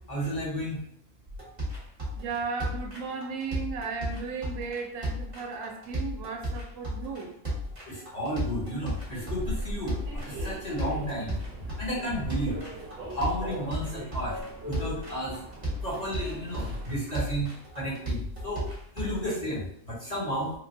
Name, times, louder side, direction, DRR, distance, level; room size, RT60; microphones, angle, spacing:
voice 1, 0.1-0.8 7.9-9.9 10.3-11.3 11.8-12.6 13.1-14.4 14.7-15.3 15.8-17.5 17.8-18.6 18.9-20.5, equal, 35° left, -8 dB, 1.2 m, -32 dB
sound 1, 1.3-19.3, equal, 30° right, 1.1 m, -34 dB
voice 2, 2.1-7.3, right 5 dB, 85° right, 3 dB, 0.9 m, -35 dB
Human voice / Subway metro underground, 9.0-17.0, right 1 dB, 55° right, 1.0 m, -40 dB
3.2 x 2.2 x 2.7 m, 0.70 s
omnidirectional pair, 1.3 m